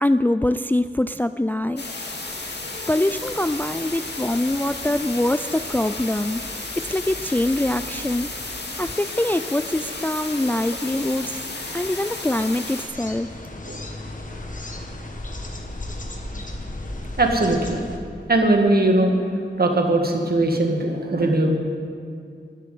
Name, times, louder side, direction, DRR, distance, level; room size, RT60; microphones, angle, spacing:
voice 1, 0.0-1.9 2.9-6.4 6.8-8.3 8.8-11.4 11.7-13.3, left 1 dB, 10° left, 12 dB, 0.3 m, -23 dB
sound 1, 1.8-12.8, left 2 dB, 65° left, 2.1 m, -33 dB
sound 2, 12.9-18.0, left 1 dB, 45° left, 1.6 m, -34 dB
voice 2, 17.2-17.8 18.3-19.1 19.6-21.6, right 2 dB, 55° right, 3 dB, 1.9 m, -20 dB
13.5 x 8.0 x 9.2 m, 2.4 s
cardioid pair, 55°, 19 cm